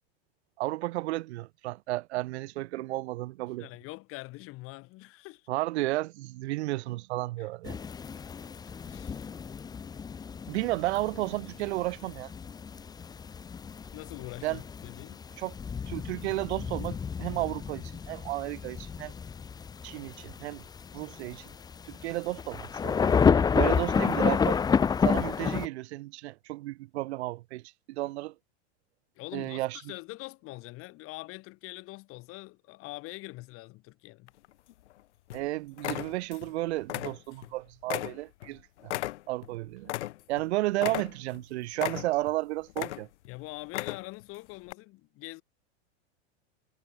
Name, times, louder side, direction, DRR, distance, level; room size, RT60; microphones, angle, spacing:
voice 1, 0.6-3.7 5.5-7.8 10.5-12.3 14.4-14.6 15.4-15.6 15.9-19.1 19.8-20.6 20.9-21.5 21.9-23.2 23.5-24.6 25.0-28.3 29.3-29.8 35.3-38.9 39.3-39.9 40.3-43.1, right 18 dB, 70° right, 0.8 m, -33 dB
voice 2, 3.6-5.5 7.4-7.5 8.1-8.3 8.9-9.2 13.9-15.2 29.2-34.3 43.3-45.4, left 21 dB, 40° left, 2.6 m, -44 dB
sound 1, 7.6-25.7, left 6 dB, 10° left, 0.8 m, -30 dB
sound 2, 34.3-34.9 35.3-35.5 35.8-36.5 36.8-37.5 37.9-40.4 40.8-41.4 41.8-42.3 42.7-43.3 43.6-44.2 44.7-44.8, left 16 dB, 80° left, 0.8 m, -35 dB
supercardioid pair, 140°, 34 cm